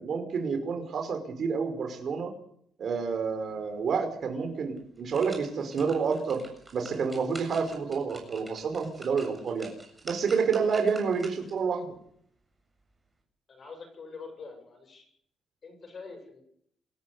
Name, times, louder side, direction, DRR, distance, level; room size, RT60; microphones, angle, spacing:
voice 1, 0.0-2.3 2.8-6.4 6.7-9.7 10.0-11.9, right 5 dB, 50° right, 6 dB, 5.4 m, -29 dB
sound 1, 4.2-4.3 4.8-11.6 12.1-12.2, right 2 dB, 15° right, 7.5 m, -48 dB
voice 2, 13.5-15.1 15.6-16.4, left 4 dB, 40° left, 5 dB, 7.7 m, -45 dB
27.5 x 14.5 x 8.3 m, 0.68 s
cardioid pair, 140°, 0 cm